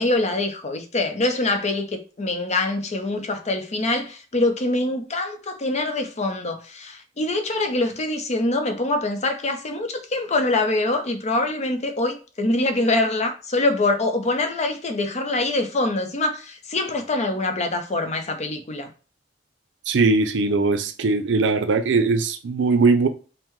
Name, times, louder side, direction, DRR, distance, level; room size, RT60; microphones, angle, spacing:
voice 1, 0.0-18.9, left 2 dB, 40° left, 0.6 m, -24 dB
voice 2, 19.9-23.1, right 3 dB, 75° right, 0.5 m, -20 dB
5.5 x 2.1 x 3.1 m
head